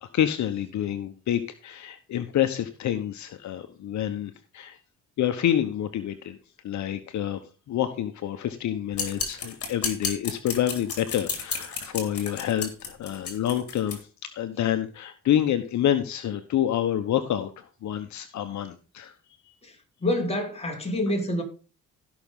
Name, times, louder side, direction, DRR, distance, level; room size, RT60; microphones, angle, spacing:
voice 1, 0.0-4.8 5.2-6.4 6.6-7.4 7.7-19.1, left 10 dB, 70° left, 1.1 m, -28 dB
sound 1, 8.9-14.0, left 4 dB, 50° left, 3.5 m, -32 dB
voice 2, 20.0-21.4, left 1 dB, 20° left, 4.0 m, -27 dB
16.0 x 6.2 x 3.7 m
cardioid pair, 90°, 30 cm